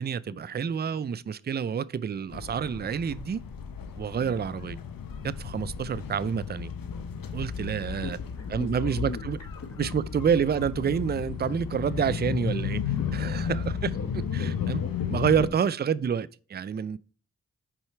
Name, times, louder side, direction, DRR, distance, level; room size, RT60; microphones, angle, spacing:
voice 1, 0.0-3.4 4.0-4.8 5.2-6.7 7.3-8.2 8.5-9.4 9.8-12.8 13.1-14.0 14.3-14.8 15.1-17.0, right 7 dB, 30° right, 0.4 m, -28 dB
sound 1, 2.3-15.5, left 7 dB, 70° left, 0.8 m, -33 dB
voice 2, 7.8-9.2 9.6-9.7 11.4-11.5 12.0-12.2 13.0-13.5 13.9-15.7, left 3 dB, 45° left, 1.3 m, -42 dB
6.1 x 4.9 x 4.4 m
cardioid pair, 40°, 35 cm